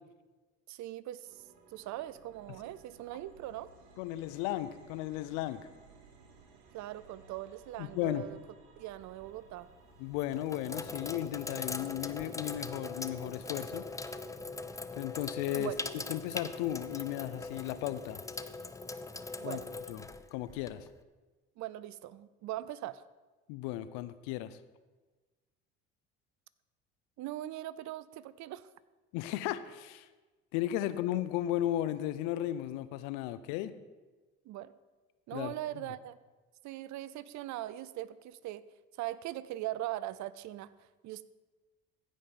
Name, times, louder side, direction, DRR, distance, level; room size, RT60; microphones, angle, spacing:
voice 1, 0.7-1.4 1.7-3.7 6.7-8.4 8.8-9.7 15.5-15.8 19.4-19.7 21.6-23.0 27.2-28.7 34.4-34.7 35.3-36.2 36.6-38.7 39.0-41.3, right 14 dB, 60° right, 17 dB, 0.6 m, -40 dB
sound 1, 1.2-18.7, right 4 dB, 80° right, 1.5 m, -60 dB
voice 2, 4.0-5.7 7.8-8.2 10.0-13.9 14.9-15.7 16.1-18.2 19.4-19.6 19.9-20.0 20.3-20.9 23.5-24.6 29.1-30.1 30.5-33.7 35.3-35.5, left 13 dB, 75° left, 14 dB, 0.7 m, -35 dB
Sink (filling or washing), 9.0-9.4 10.1-21.0, left 3 dB, 10° left, 0.5 m, -41 dB
15.5 x 5.3 x 5.8 m, 1.2 s
hypercardioid pair, 70°, 33 cm